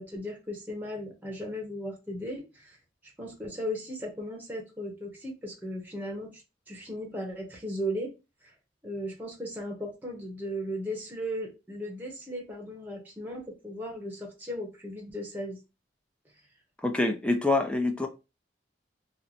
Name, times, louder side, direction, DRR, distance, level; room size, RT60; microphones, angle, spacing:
voice 1, 0.0-2.8 3.2-6.4 6.7-8.1 8.4-8.5 8.8-15.6, equal, 10° right, 0.8 m, -36 dB
voice 2, 16.8-18.1, left 2 dB, 5° left, 0.4 m, -26 dB
2.9 x 2.1 x 3.9 m
head